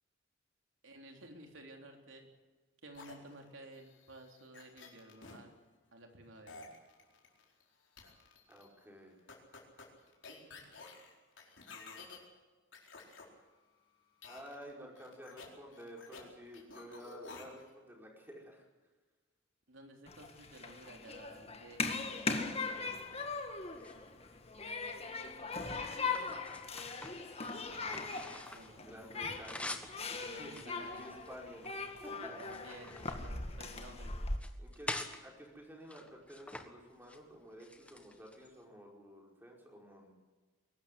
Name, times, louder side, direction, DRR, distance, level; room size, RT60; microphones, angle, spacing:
voice 1, 0.8-2.3 2.8-5.5 5.9-6.6 19.7-21.8 22.4-23.0 27.5-28.8 30.2-31.1 32.2-34.1, right 1 dB, 85° right, 3 dB, 3.6 m, -54 dB
sound 1, 2.9-5.4 6.5-7.6 8.0-8.7 9.3-12.2 12.7-13.2 14.2-14.7 15.0-16.2 16.5-17.7, left 4 dB, 70° left, 4.5 m, -52 dB
voice 2, 8.5-9.1 14.3-18.6 25.6-26.4 28.7-32.4 34.6-40.1, equal, 10° right, -1 dB, 4.9 m, -52 dB
Human group actions, 20.1-34.4, left 4 dB, 30° left, 1.8 m, -40 dB
sound 2, 23.7-24.6 25.3-28.8 29.1-30.0 30.5-31.8 32.2-33.9 34.3-35.2 35.8-36.7 36.9-37.2 37.6-38.5, left 2 dB, 5° left, 1.5 m, -46 dB
22.5 x 13.0 x 10.0 m, 1.3 s
head